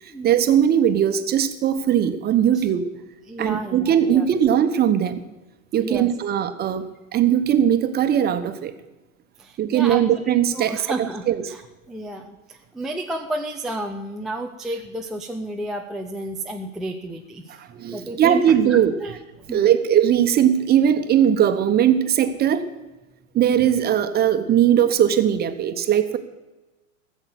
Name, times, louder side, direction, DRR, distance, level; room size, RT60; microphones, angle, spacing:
voice 1, 0.2-2.8 3.4-5.2 5.7-6.9 7.1-8.7 9.6-11.4 17.7-18.9 19.5-22.7 23.3-26.2, right 9 dB, 25° right, 9 dB, 1.1 m, -19 dB
voice 2, 3.3-4.3 5.8-6.1 9.4-10.0 10.5-11.6 11.9-17.6 17.9-18.4 18.7-19.2 19.5-19.7, right 1 dB, ahead, 0 dB, 0.4 m, -32 dB
15.0 x 7.9 x 7.8 m, 1.1 s
hypercardioid pair, 105°, 40 cm